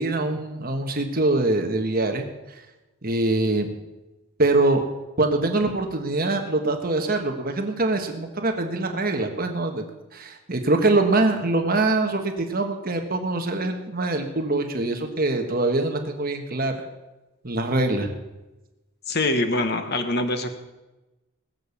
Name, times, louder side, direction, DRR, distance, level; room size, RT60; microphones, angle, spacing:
voice 1, 0.0-2.6 3.0-3.7 4.4-4.8 5.2-9.8 10.1-16.9 17.4-18.1, right 2 dB, 40° right, 4 dB, 1.3 m, -24 dB
voice 2, 19.1-20.5, left 2 dB, 45° left, 7 dB, 1.2 m, -24 dB
20.5 x 6.9 x 7.0 m, 1.1 s
head